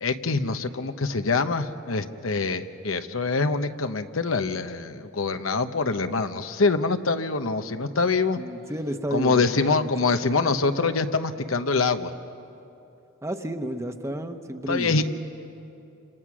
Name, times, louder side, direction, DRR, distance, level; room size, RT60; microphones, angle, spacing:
voice 1, 0.0-8.4 9.1-12.1 14.7-15.0, left 4 dB, 90° left, 8 dB, 1.0 m, -25 dB
voice 2, 8.4-9.9 10.2-10.5 13.2-15.0, right 1 dB, 15° right, 7 dB, 1.1 m, -32 dB
29.5 x 27.0 x 6.2 m, 2.8 s
head